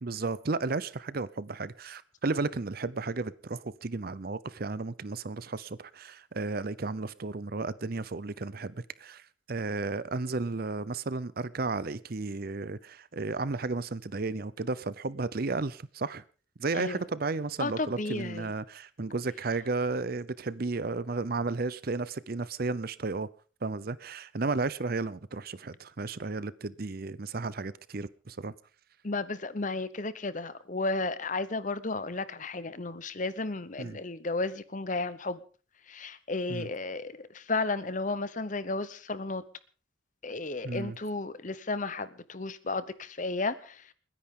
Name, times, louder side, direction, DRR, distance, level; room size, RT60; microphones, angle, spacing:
voice 1, 0.0-16.2 16.6-23.3 23.6-28.5 33.8-34.0 36.5-36.7 40.6-41.0, right 3 dB, 50° right, 0.6 m, -33 dB
voice 2, 16.7-17.0 17.6-18.5 29.0-35.4 35.9-39.4 40.2-43.9, left 3 dB, 40° left, 0.9 m, -33 dB
29.5 x 10.0 x 3.8 m
head